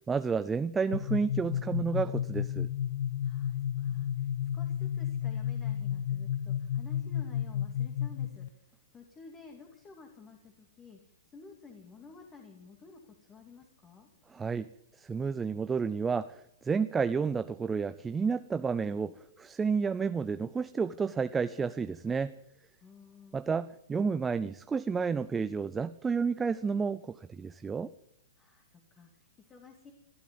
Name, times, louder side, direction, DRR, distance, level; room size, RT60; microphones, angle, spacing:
voice 1, 0.1-2.7 14.3-14.7 15.0-22.3 23.3-27.9, right 5 dB, 15° right, 13 dB, 0.5 m, -31 dB
sound 1, 0.9-8.5, left 10 dB, 65° left, 0.9 m, -32 dB
voice 2, 3.2-14.1 22.8-23.4 28.4-29.9, left 4 dB, 20° left, 3 dB, 2.6 m, -53 dB
19.5 x 12.5 x 5.3 m, 0.78 s
hypercardioid pair, 135°, 0 cm